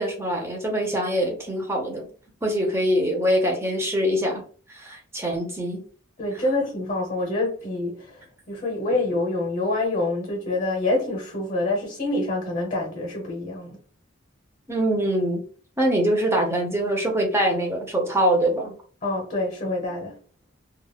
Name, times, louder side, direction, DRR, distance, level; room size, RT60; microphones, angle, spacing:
voice 1, 0.0-2.1 2.4-4.4 4.7-5.8 14.7-15.4 15.8-18.7, equal, 15° right, 0.6 m, -23 dB
voice 2, 6.2-13.8 19.0-20.2, left 2 dB, 35° left, 0.8 m, -26 dB
2.3 x 2.0 x 3.3 m
head